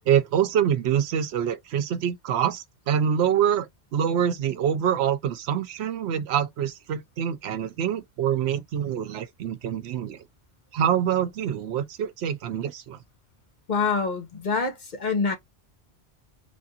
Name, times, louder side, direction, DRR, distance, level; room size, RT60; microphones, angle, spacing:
voice 1, 0.1-10.2 10.7-13.0, right 9 dB, 75° right, 0.8 m, -25 dB
voice 2, 13.7-15.3, left 4 dB, 45° left, 0.9 m, -26 dB
3.3 x 2.5 x 2.7 m
omnidirectional pair, 1.1 m